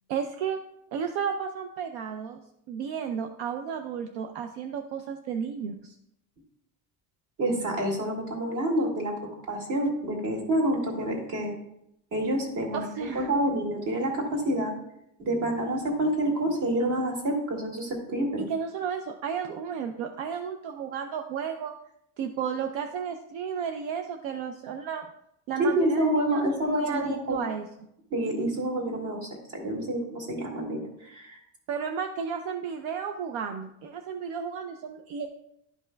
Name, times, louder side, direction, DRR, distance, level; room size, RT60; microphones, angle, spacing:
voice 1, 0.1-0.6 0.9-5.9 12.7-13.3 18.4-21.7 22.2-25.1 25.5-26.4 26.7-27.7 31.7-35.3, right 7 dB, 75° right, 5 dB, 0.7 m, -33 dB
voice 2, 7.4-9.1 9.5-11.5 12.1-12.8 13.1-14.7 15.2-18.4 25.6-27.4 28.1-31.4, right 1 dB, 45° right, 0 dB, 2.1 m, -28 dB
12.0 x 5.4 x 2.2 m, 0.78 s
cardioid pair, 165°, 45 cm